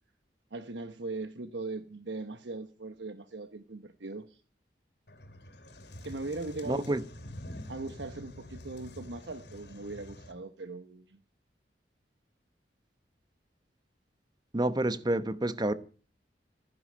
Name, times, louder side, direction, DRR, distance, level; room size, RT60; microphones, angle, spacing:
voice 1, 0.5-4.4 6.0-6.9 7.7-11.2, right 3 dB, 80° right, 1.0 m, -40 dB
sound 1, 5.1-10.3, left 1 dB, 70° left, 2.7 m, -47 dB
voice 2, 6.7-7.0 14.5-15.7, right 1 dB, 25° right, 0.9 m, -28 dB
15.0 x 10.5 x 8.7 m
head